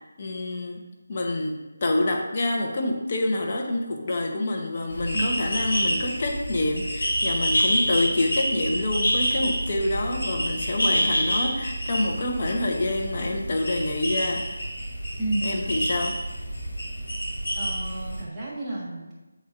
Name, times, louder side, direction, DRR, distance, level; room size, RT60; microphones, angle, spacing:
voice 1, 0.2-0.8 1.1-14.6 15.4-16.2, left 2 dB, 40° left, 1 dB, 1.0 m, -27 dB
Cacomixtles pana, 4.9-18.2, equal, 75° left, 1.9 m, -28 dB
voice 2, 17.6-19.1, right 2 dB, 5° right, -13 dB, 1.4 m, -31 dB
8.7 x 4.3 x 2.6 m, 1.1 s
figure-of-eight pair, 160°, 0 cm